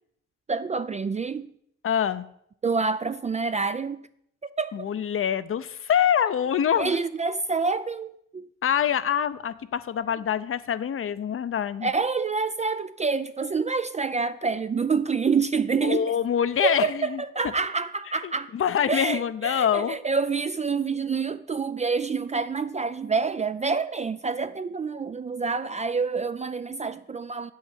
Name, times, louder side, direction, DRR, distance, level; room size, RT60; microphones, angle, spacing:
voice 1, 0.5-1.5 2.6-4.0 4.4-4.9 6.8-8.5 11.8-16.1 16.6-18.5 18.9-27.5, right 4 dB, 25° right, 0.4 m, -27 dB
voice 2, 1.8-2.3 4.7-7.0 8.6-11.9 15.8-17.2 18.2-20.0, left 9 dB, 45° left, 0.7 m, -25 dB
8.8 x 6.4 x 7.4 m
cardioid pair, 90°, 30 cm